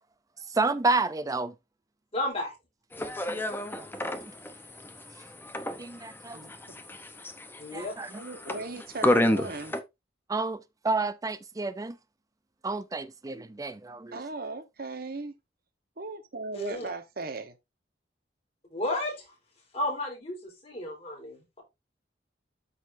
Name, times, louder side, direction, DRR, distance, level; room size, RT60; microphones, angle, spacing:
voice 1, 0.5-1.5 3.4-3.5 3.8-3.9 5.8-6.4 7.7-8.1 10.3-12.0 12.6-14.2, right 3 dB, 20° right, 0.4 m, -30 dB
voice 2, 2.1-2.5 7.6-7.9 16.5-16.9 18.7-19.2 19.7-20.4 20.6-21.6, left 1 dB, 35° left, 3.9 m, -32 dB
sound 1, 2.9-9.8, left 1 dB, 10° left, 0.8 m, -31 dB
voice 3, 8.2-9.7 14.1-15.3 16.0-17.5, right 2 dB, 55° right, 1.2 m, -37 dB
12.5 x 4.2 x 2.6 m
head